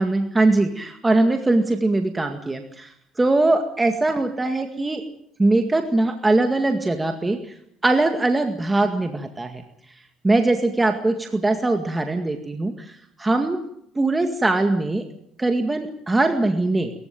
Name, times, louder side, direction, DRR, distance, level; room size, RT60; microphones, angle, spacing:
voice 1, 0.0-2.9 3.2-5.0 5.4-7.4 7.8-9.6 10.2-13.6 14.0-15.1 15.4-16.9, right 2 dB, 15° right, 5 dB, 2.0 m, -21 dB
22.0 x 15.0 x 9.2 m, 0.72 s
cardioid pair, 115°, 0 cm